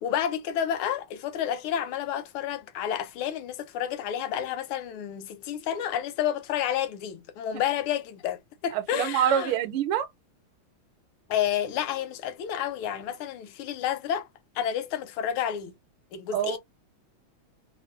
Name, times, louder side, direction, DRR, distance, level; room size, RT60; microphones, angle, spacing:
voice 1, 0.0-9.5 11.3-14.3 14.5-15.7 16.1-16.6, left 10 dB, 80° left, 1.5 m, -30 dB
voice 2, 8.7-10.1 16.3-16.6, right 9 dB, 80° right, 1.4 m, -26 dB
3.5 x 2.5 x 2.3 m
omnidirectional pair, 2.3 m